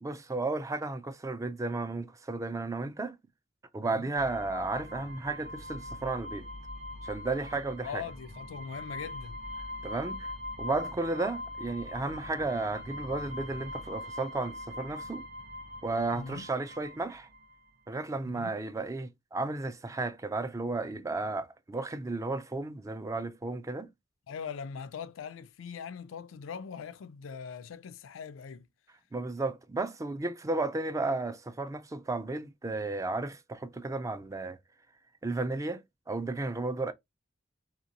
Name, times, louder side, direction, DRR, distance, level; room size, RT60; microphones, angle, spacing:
voice 1, 0.0-3.2 3.7-6.5 7.0-8.0 9.8-10.3 10.6-15.2 15.8-17.3 17.9-23.9 29.1-34.6 35.2-35.8 36.1-36.9, right 3 dB, 15° right, 0.3 m, -33 dB
sound 1, 4.2-17.6, left 1 dB, 80° right, 1.4 m, -42 dB
voice 2, 7.8-9.4 16.1-16.5 18.2-18.6 24.3-28.7, left 6 dB, 80° left, 0.4 m, -41 dB
2.8 x 2.8 x 2.7 m
head